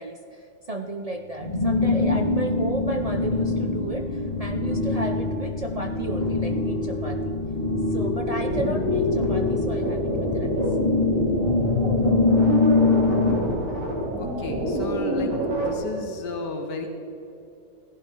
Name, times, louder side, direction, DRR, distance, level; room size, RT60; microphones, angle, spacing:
voice 1, 0.0-7.4 7.9-10.6, right 2 dB, 55° right, 5 dB, 0.4 m, -33 dB
sound 1, 0.9-11.5, left 7 dB, 20° right, 1.9 m, -39 dB
sound 2, 1.4-13.4, left 3 dB, 25° left, 2.1 m, -24 dB
sound 3, 8.1-15.7, right 1 dB, 85° right, 3.5 m, -27 dB
voice 2, 14.2-16.9, left 3 dB, 90° left, 4 dB, 1.9 m, -33 dB
16.0 x 15.5 x 4.6 m, 2.9 s
omnidirectional pair, 1.8 m